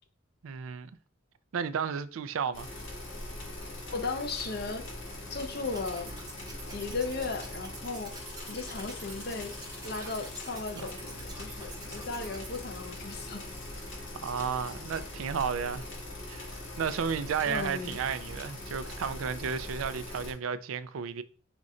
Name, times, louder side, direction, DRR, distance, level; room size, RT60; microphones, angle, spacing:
voice 1, 0.4-0.9 1.5-2.7 10.0-10.1 14.1-15.9 16.3-21.2, right 6 dB, 85° right, 0.4 m, -33 dB
sound 1, 2.5-20.3, left 1 dB, 65° left, 1.6 m, -42 dB
voice 2, 3.9-4.9 5.3-6.1 6.7-8.1 8.5-9.5 9.8-13.4 17.4-18.0, left 3 dB, 50° left, 0.6 m, -36 dB
sound 2, 5.6-12.6, right 4 dB, 20° right, 0.7 m, -48 dB
5.2 x 2.5 x 4.2 m
head